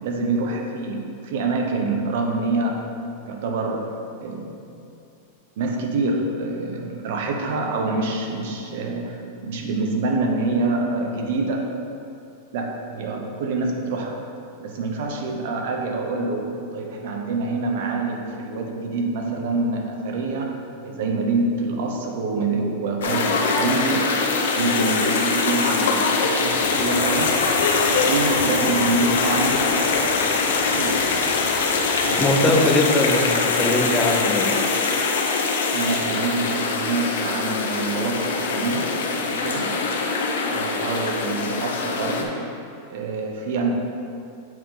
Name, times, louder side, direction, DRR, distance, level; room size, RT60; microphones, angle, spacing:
voice 1, 0.0-2.9 3.3-3.9 4.2-4.5 5.6-11.8 12.5-14.2 14.6-24.0 24.6-27.4 27.9-30.2 30.6-31.0 31.7-32.4 35.7-38.9 39.2-39.8 40.4-42.4 42.9-43.7, right 3 dB, 65° right, 2 dB, 1.0 m, -26 dB
sound 1, 23.0-42.2, left 4 dB, 90° left, 0.9 m, -23 dB
sound 2, 26.5-32.7, left 8 dB, 40° left, 0.4 m, -34 dB
voice 2, 32.2-34.6, left 2 dB, 10° left, 0 dB, 0.8 m, -21 dB
7.7 x 5.2 x 3.8 m, 2.6 s
supercardioid pair, 145°, 0 cm